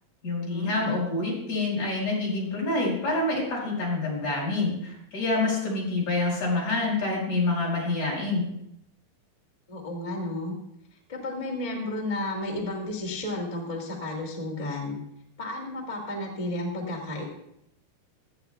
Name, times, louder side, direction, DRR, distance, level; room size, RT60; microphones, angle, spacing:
voice 1, 0.2-8.5, left 2 dB, 45° left, -4 dB, 6.2 m, -27 dB
voice 2, 9.7-10.6 11.1-15.0 15.4-17.2, left 1 dB, 15° left, -2 dB, 1.4 m, -32 dB
16.5 x 14.0 x 2.3 m, 0.76 s
omnidirectional pair, 4.6 m